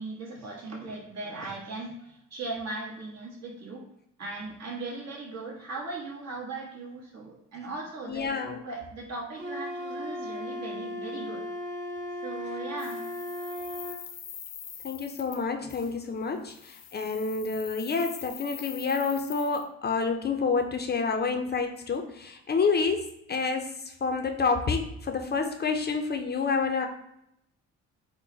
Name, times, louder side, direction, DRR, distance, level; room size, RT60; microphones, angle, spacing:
voice 1, 0.0-3.9 4.2-8.4 8.6-11.4 12.2-13.0, right 3 dB, 60° right, -2 dB, 1.3 m, -38 dB
voice 2, 8.1-8.6 14.8-23.7 24.0-26.9, left 4 dB, 35° left, 4 dB, 0.5 m, -28 dB
Wind instrument woodwind instrument, 9.4-14.0, left 1 dB, 40° right, 1.2 m, -36 dB
sound 1, 12.8-15.4 15.7-15.9 16.5-19.6, left 9 dB, 80° left, 0.6 m, -44 dB
3.9 x 2.1 x 3.8 m, 0.78 s
cardioid pair, 90°, 30 cm